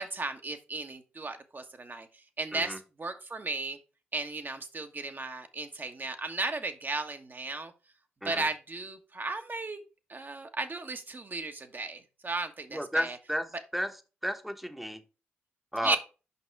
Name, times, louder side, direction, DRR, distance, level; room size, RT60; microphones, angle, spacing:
voice 1, 0.0-2.1 2.4-3.8 4.1-7.7 8.2-9.8 10.1-13.2 15.8-16.0, right 3 dB, 40° right, 1.4 m, -35 dB
voice 2, 12.7-15.0 15.7-16.0, equal, ahead, 1.2 m, -33 dB
5.8 x 5.4 x 4.7 m
supercardioid pair, 45°, 5 cm